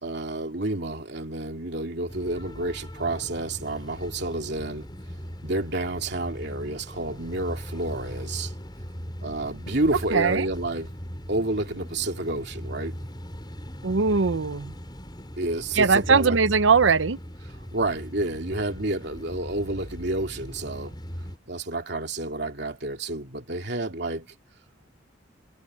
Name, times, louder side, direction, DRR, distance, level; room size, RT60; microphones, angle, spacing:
voice 1, 0.0-4.9 5.4-8.5 9.2-10.9 11.3-13.0 15.4-16.4 17.5-20.9 21.5-24.3, right 2 dB, 60° right, 2.9 m, -30 dB
sound 1, 2.1-21.4, equal, 25° left, 7.1 m, -39 dB
voice 2, 10.1-10.5 13.8-14.7 15.8-17.2, right 5 dB, 75° right, 0.7 m, -20 dB
head